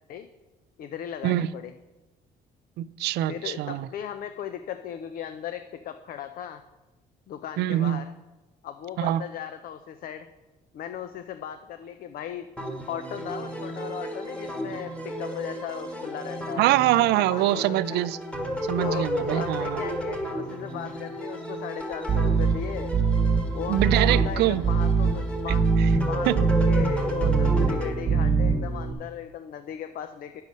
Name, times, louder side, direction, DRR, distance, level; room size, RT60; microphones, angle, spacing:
voice 1, 0.8-1.7 3.3-6.6 7.3-8.1 8.6-10.3 10.7-12.5 12.9-16.7 17.2-18.0 18.8-22.9 23.5-25.7 26.0-30.4, left 10 dB, 60° left, 9 dB, 0.5 m, -37 dB
voice 2, 2.8-3.9 7.6-8.0 9.0-9.2 16.6-18.2 18.7-19.8 23.7-24.7 25.8-25.9 26.3-26.4, right 14 dB, 80° right, 17 dB, 0.4 m, -24 dB
sound 1, 12.6-27.9, equal, 5° left, 1.4 m, -33 dB
sound 2, 22.1-28.9, right 4 dB, 35° right, 1.1 m, -23 dB
9.5 x 6.5 x 5.3 m, 1.1 s
cardioid pair, 110°, 17 cm